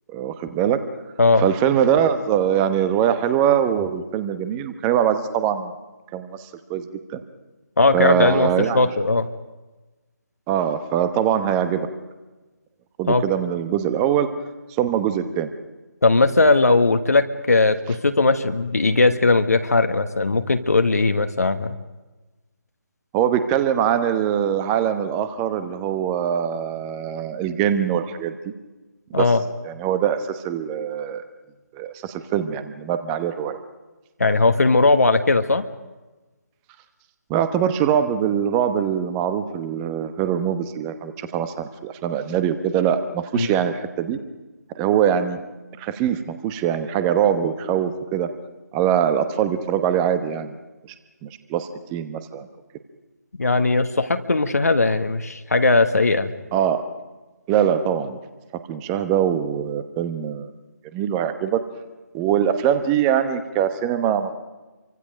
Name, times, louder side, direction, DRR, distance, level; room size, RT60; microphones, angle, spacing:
voice 1, 0.1-0.8 1.4-5.7 6.1-6.8 7.1-7.2 7.9-8.8 10.5-11.9 13.0-14.3 14.8-15.5 23.1-28.3 29.1-29.3 29.6-31.2 31.7-33.6 37.3-44.2 44.7-45.4 45.8-48.3 48.7-50.5 51.2-52.5 56.5-56.8 57.5-58.2 58.7-60.5 60.9-61.6 62.1-64.3, right 9 dB, 10° right, 10 dB, 1.0 m, -22 dB
voice 2, 7.8-9.3 13.1-13.2 16.0-21.7 29.1-29.4 34.2-35.7 43.3-43.5 53.4-56.3, left 3 dB, 60° left, 8 dB, 1.4 m, -18 dB
29.5 x 24.5 x 5.2 m, 1.2 s
figure-of-eight pair, 150°, 10 cm